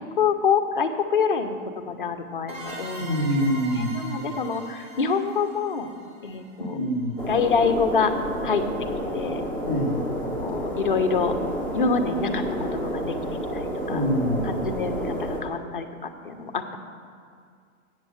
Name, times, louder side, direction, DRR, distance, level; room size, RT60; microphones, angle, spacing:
voice 1, 0.2-5.9 6.2-6.8 7.3-8.1 8.4-8.6 9.1-9.5 10.4-11.3 11.7-12.4 12.7-13.0 13.5-14.0 14.5-15.9 16.2-16.8, left 5 dB, 40° left, 6 dB, 0.5 m, -26 dB
sound 1, 2.5-7.0, equal, 70° right, 2.3 m, -40 dB
voice 2, 3.0-4.0 6.7-7.1 9.6-10.0 13.9-14.5, equal, 15° right, -10 dB, 1.8 m, -25 dB
sound 2, 7.2-15.4, equal, 40° right, 2.2 m, -30 dB
8.0 x 7.3 x 7.6 m, 2.2 s
hypercardioid pair, 180°, 43 cm